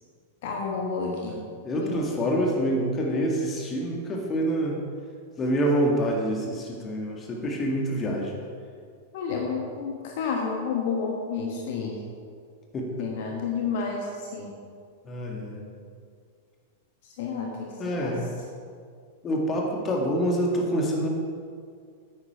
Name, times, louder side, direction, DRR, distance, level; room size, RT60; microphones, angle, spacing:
voice 1, 0.4-1.4 1.7-2.0 9.1-12.0 13.0-14.6 17.2-17.7 18.0-18.1, left 5 dB, 55° left, 0 dB, 1.3 m, -30 dB
voice 2, 1.3-4.8 5.4-8.4 12.7-13.1 15.1-15.6 17.8-18.3 19.2-21.1, equal, 25° left, 0 dB, 1.9 m, -26 dB
9.9 x 8.9 x 4.4 m, 2.1 s
figure-of-eight pair, 95°, 0 cm